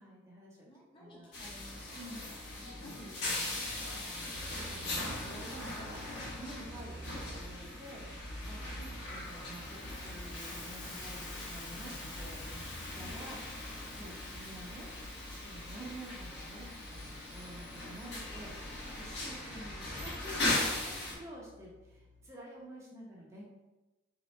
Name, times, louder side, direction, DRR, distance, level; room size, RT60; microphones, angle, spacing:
voice 1, 0.0-0.7 1.0-1.3 1.9-2.2 4.5-6.0 6.4-8.0 8.5-8.6 9.0-12.6 12.9-13.7 14.0-14.9 15.4-18.5 19.0-23.4, right 1 dB, 15° right, -5 dB, 0.7 m, -49 dB
voice 2, 0.7-2.3 2.7-4.4 8.7-9.0 13.0-13.2, equal, 25° left, -2 dB, 0.7 m, -54 dB
sound 1, 1.3-21.1, left 1 dB, 60° left, 1.1 m, -39 dB
sound 2, 4.3-22.3, right 2 dB, 70° right, 0.4 m, -56 dB
Hiss, 9.0-19.0, left 2 dB, 85° left, 1.1 m, -52 dB
3.6 x 3.0 x 3.1 m, 1.1 s
head